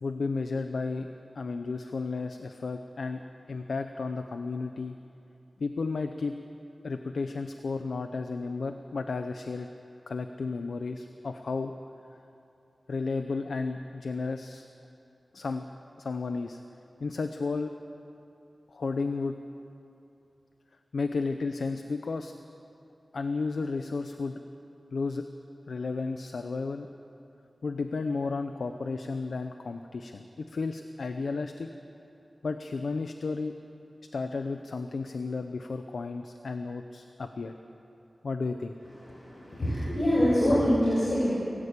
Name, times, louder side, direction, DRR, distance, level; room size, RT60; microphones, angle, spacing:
voice 1, 0.0-1.1 1.4-3.2 3.5-5.0 5.6-6.3 6.8-9.7 10.1-11.7 12.9-14.6 15.3-15.7 16.0-16.6 17.0-17.7 18.7-19.3 20.9-22.3 23.1-24.4 24.9-25.3 25.7-26.9 27.6-31.7 32.4-33.5 34.1-37.5 38.2-38.8, left 4 dB, 90° left, 7 dB, 0.8 m, -33 dB
voice 2, 39.0-41.3, equal, 65° left, -9 dB, 7.4 m, -25 dB
27.5 x 14.5 x 8.4 m, 2.8 s
wide cardioid pair, 100°, 0 cm